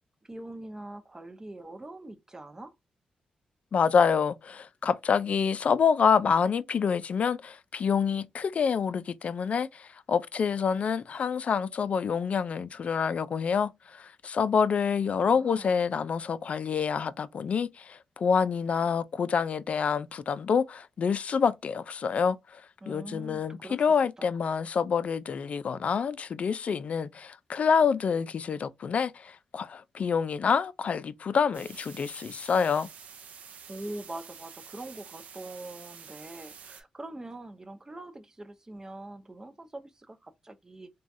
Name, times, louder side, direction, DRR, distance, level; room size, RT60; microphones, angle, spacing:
voice 1, 0.2-2.7 15.1-15.8 22.8-23.8 24.2-24.3 33.7-40.9, right 2 dB, 20° right, 0.6 m, -43 dB
voice 2, 3.7-32.9, left 6 dB, 55° left, 0.3 m, -27 dB
sound 1, 31.5-36.8, right 7 dB, 75° right, 0.4 m, -48 dB
3.1 x 2.2 x 2.5 m
cardioid pair, 65°, 3 cm